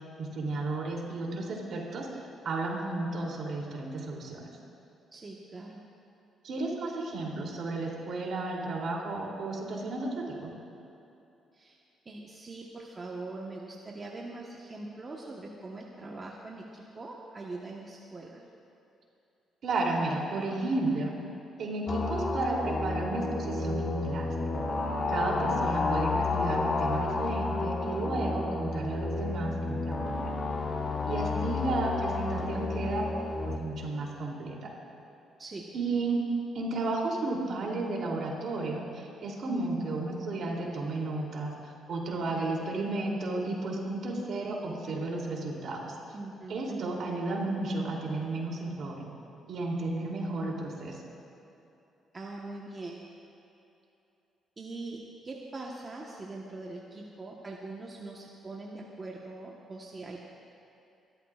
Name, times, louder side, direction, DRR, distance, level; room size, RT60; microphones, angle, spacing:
voice 1, 0.2-2.1 2.4-4.5 6.4-10.5 19.6-21.1 21.6-24.3 25.1-30.3 31.0-33.0 33.4-34.6 35.7-36.2 36.5-41.5 41.9-45.9 46.5-49.1 49.5-51.0, right 2 dB, 65° right, -2 dB, 3.1 m, -33 dB
voice 2, 5.1-5.8 11.5-11.8 12.0-18.4 35.4-36.0 46.1-47.0 52.1-53.0 54.6-55.0 55.2-60.2, right 2 dB, 30° right, -2 dB, 1.2 m, -42 dB
sound 1, 21.9-33.6, left 3 dB, 45° left, 1.2 m, -31 dB
28.0 x 13.0 x 2.5 m, 2.9 s
cardioid pair, 90°, 0 cm